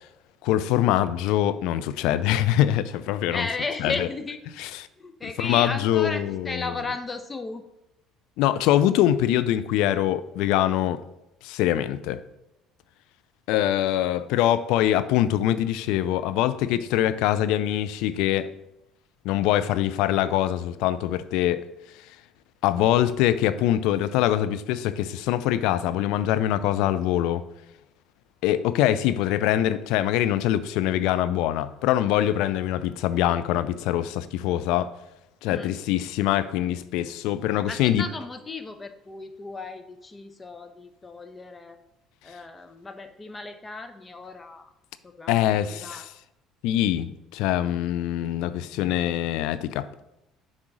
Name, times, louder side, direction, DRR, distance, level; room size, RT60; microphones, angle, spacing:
voice 1, 0.4-3.5 3.8-4.1 4.6-4.9 5.4-6.8 8.4-11.0 11.4-12.2 13.5-18.5 19.2-21.6 22.6-27.4 28.4-34.9 35.4-38.0 45.3-46.0 46.6-49.9, left 12 dB, 70° left, 13 dB, 0.4 m, -23 dB
voice 2, 3.3-4.4 5.0-7.6 35.5-35.7 37.7-41.8 42.2-44.7 45.0-46.0, left 3 dB, 25° left, 7 dB, 0.9 m, -35 dB
6.3 x 3.7 x 6.1 m, 0.87 s
hypercardioid pair, 65°, 0 cm